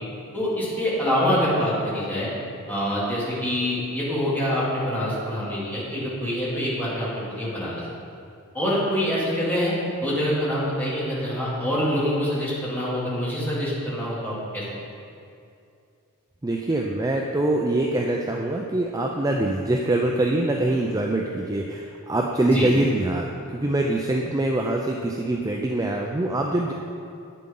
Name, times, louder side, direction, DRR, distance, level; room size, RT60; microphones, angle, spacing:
voice 1, 0.3-2.3 2.7-7.8 8.5-9.8 10.0-14.6 22.5-22.7, equal, 10° left, -8 dB, 2.7 m, -25 dB
voice 2, 16.4-26.7, right 2 dB, 15° right, 0 dB, 0.5 m, -24 dB
10.5 x 8.8 x 3.9 m, 2.5 s
head